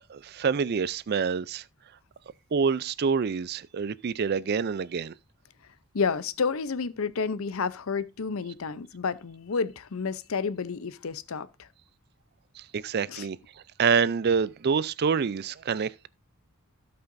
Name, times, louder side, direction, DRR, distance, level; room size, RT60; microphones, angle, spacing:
voice 1, 0.1-1.6 2.5-5.1 12.6-13.4 13.8-16.1, right 6 dB, 45° right, 0.4 m, -27 dB
voice 2, 5.9-11.7 13.1-13.3, left 5 dB, 70° left, 0.6 m, -30 dB
17.0 x 5.6 x 2.6 m
head